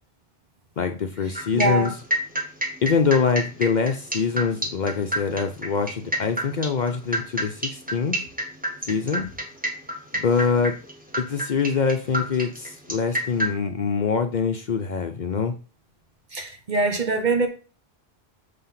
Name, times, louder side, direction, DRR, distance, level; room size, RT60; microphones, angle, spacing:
voice 1, 0.8-1.9 2.8-8.2 8.9-9.3 10.1-10.8 11.2-15.5, left 5 dB, 50° left, 0.7 m, -24 dB
sound 1, 1.3-13.5, right 1 dB, 10° right, 1.4 m, -29 dB
voice 2, 1.5-1.9 16.3-17.5, right 3 dB, 45° right, 1.2 m, -23 dB
7.2 x 3.4 x 5.7 m
omnidirectional pair, 1.1 m